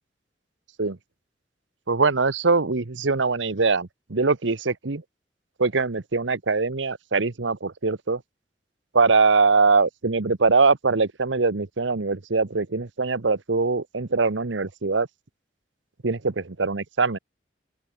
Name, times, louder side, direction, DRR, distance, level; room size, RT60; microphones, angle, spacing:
voice 1, 1.9-5.0 5.6-8.2 8.9-15.1 16.0-17.2, right 4 dB, 80° right, 1.0 m, -22 dB
open air
head